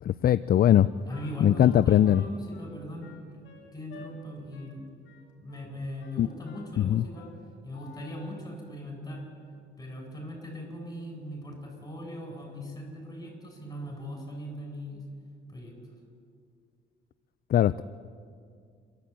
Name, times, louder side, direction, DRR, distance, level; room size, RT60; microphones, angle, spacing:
voice 1, 0.0-0.9 1.4-2.2 6.2-6.3 6.8-7.0 17.5-17.8, left 11 dB, 50° left, 15 dB, 0.4 m, -21 dB
Wind instrument woodwind instrument, 0.6-4.1 4.5-4.8 5.0-5.7 6.0-6.8 7.1-7.4 7.7-8.4, left 5 dB, 75° left, 3.8 m, -51 dB
voice 2, 1.1-5.0 5.4-7.3 7.6-9.2 9.8-15.0 15.5-15.7, left 1 dB, 20° left, 1 dB, 7.7 m, -39 dB
29.0 x 11.5 x 8.8 m, 2.3 s
cardioid pair, 90°, 20 cm